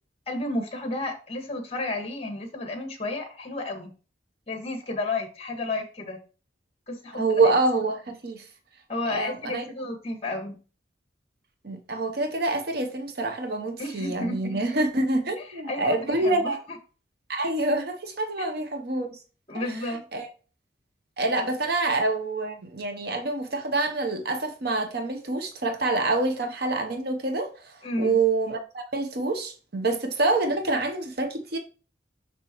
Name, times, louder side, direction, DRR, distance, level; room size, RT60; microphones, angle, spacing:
voice 1, 0.3-3.9 4.5-6.2 6.9-7.4 8.9-10.5 13.8-14.6 15.4-16.8 18.4-18.5 19.5-20.0 27.8-28.2, left 2 dB, 30° left, 1.7 m, -32 dB
voice 2, 7.1-8.5 9.0-9.6 11.6-16.6 17.3-19.2 19.5-19.6 20.1-20.3 21.2-31.6, right 2 dB, 55° right, 0.8 m, -26 dB
7.0 x 6.0 x 3.0 m
head